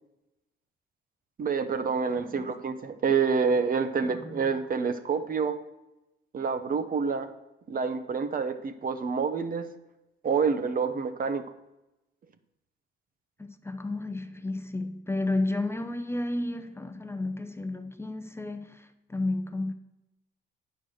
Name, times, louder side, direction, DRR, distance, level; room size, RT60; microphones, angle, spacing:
voice 1, 1.4-5.5 6.3-7.3 7.7-9.7 10.2-11.4, right 5 dB, 45° right, 0.8 m, -27 dB
voice 2, 4.0-4.4 13.4-19.7, left 2 dB, 10° left, 0.6 m, -32 dB
8.9 x 4.7 x 6.4 m
cardioid pair, 90°, 20 cm